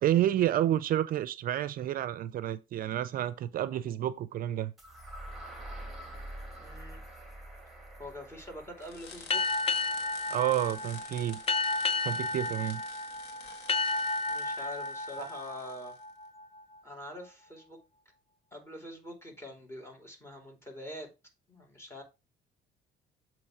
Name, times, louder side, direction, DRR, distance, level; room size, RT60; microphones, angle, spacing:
voice 1, 0.0-4.7 10.3-11.4 12.0-12.8 15.2-15.3, right 12 dB, 60° right, 0.5 m, -29 dB
sound 1, 4.8-12.7, right 1 dB, ahead, 2.3 m, -47 dB
voice 2, 6.6-7.0 8.0-9.4 14.3-15.9 16.8-17.8 18.5-21.1 21.5-22.0, left 1 dB, 15° left, 2.9 m, -45 dB
sound 2, 8.8-16.0, left 5 dB, 80° left, 1.7 m, -50 dB
sound 3, 9.3-16.6, left 3 dB, 35° left, 0.8 m, -32 dB
7.5 x 3.1 x 5.8 m
cardioid pair, 110°, 17 cm